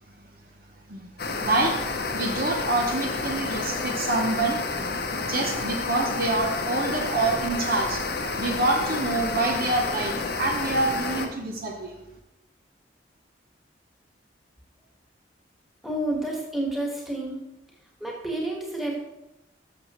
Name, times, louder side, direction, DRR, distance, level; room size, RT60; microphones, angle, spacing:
sound 1, 1.2-11.3, left 3 dB, 55° left, 0.8 m, -30 dB
voice 1, 1.4-1.8 2.1-4.6 5.1-8.0 8.4-11.9, right 2 dB, 50° right, 2 dB, 0.9 m, -26 dB
voice 2, 15.8-17.4 18.0-18.9, right 1 dB, ahead, -3 dB, 1.6 m, -29 dB
12.0 x 6.6 x 3.1 m, 0.94 s
head